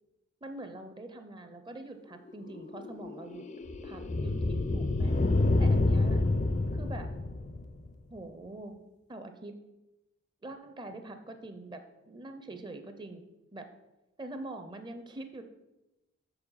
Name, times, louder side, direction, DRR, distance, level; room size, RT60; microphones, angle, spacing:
voice 1, 0.4-3.4 3.8-5.1 5.6-6.2 6.7-7.1 8.1-8.7 9.1-9.5 10.4-13.2 13.5-13.7 14.2-15.4, right 2 dB, 20° right, 7 dB, 0.5 m, -44 dB
sound 1, 2.3-7.9, left 2 dB, 35° left, 0.4 m, -28 dB
6.9 x 4.7 x 5.5 m, 0.98 s
head